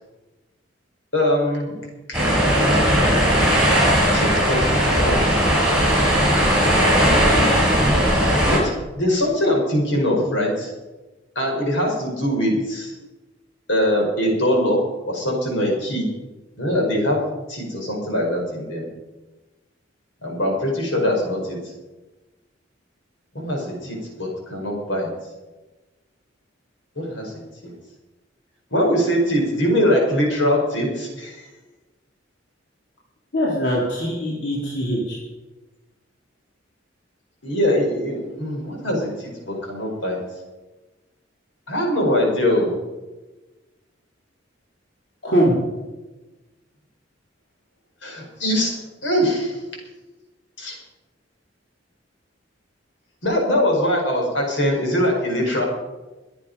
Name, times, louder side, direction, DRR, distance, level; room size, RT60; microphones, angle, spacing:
voice 1, 1.1-1.8 2.1-2.2 2.7-3.2 4.1-5.4 8.4-10.7 11.3-12.9 13.7-14.8 15.1-16.1 16.6-17.2 17.5-18.8 20.2-21.6 23.3-25.1 26.9-27.4 28.7-31.4 37.4-40.2 41.7-42.7 48.0-49.6 50.6-50.8 53.2-55.6, equal, 85° left, 0 dB, 5.1 m, -22 dB
sound 1, 2.1-8.6, equal, 5° right, 6.8 m, -17 dB
voice 2, 33.3-35.2 45.2-45.6, equal, 65° left, -5 dB, 3.3 m, -22 dB
23.5 x 8.6 x 5.4 m, 1.1 s
head